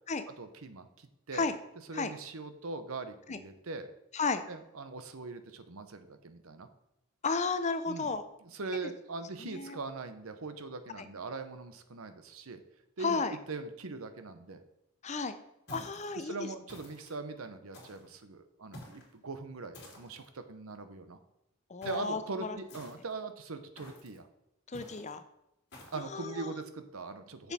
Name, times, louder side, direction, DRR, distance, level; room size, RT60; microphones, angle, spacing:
voice 1, 0.4-1.5 1.9-3.9 4.5-6.7 7.9-8.1 8.5-12.6 13.0-14.6 15.7-15.9 16.1-21.2 21.8-24.3 25.9-27.5, right 3 dB, 70° right, 9 dB, 0.8 m, -41 dB
voice 2, 4.1-4.4 7.2-8.2 8.7-8.8 9.4-9.8 11.0-11.1 13.0-13.4 15.0-15.4 15.7-16.5 21.7-22.6 24.7-25.2 25.9-26.6 27.4-27.5, left 4 dB, 30° left, 11 dB, 0.6 m, -33 dB
sound 1, 15.7-16.1 16.7-17.2 17.7-18.1 18.7-19.1 19.7-20.3 21.8-22.1 22.7-23.2 23.8-24.2 24.7-25.1 25.7-26.1, left 1 dB, 50° left, 2.9 m, -51 dB
7.1 x 7.0 x 4.2 m, 0.83 s
head